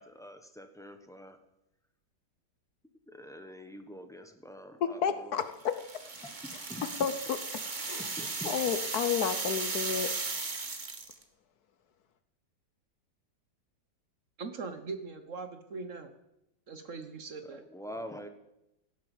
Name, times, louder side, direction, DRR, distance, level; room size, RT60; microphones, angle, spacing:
voice 1, 0.0-1.4 3.1-5.4 6.4-6.8 8.2-8.5 17.4-18.3, equal, ahead, 7 dB, 1.1 m, -45 dB
voice 2, 4.8-5.7 6.8-7.4 7.8-8.1 8.4-10.1, left 7 dB, 65° left, 11 dB, 1.3 m, -31 dB
sound 1, 5.6-11.2, right 3 dB, 30° right, 1.3 m, -36 dB
voice 3, 14.4-16.1 16.7-17.6, right 4 dB, 50° right, 8 dB, 1.4 m, -40 dB
16.5 x 9.9 x 7.0 m, 0.87 s
omnidirectional pair, 1.9 m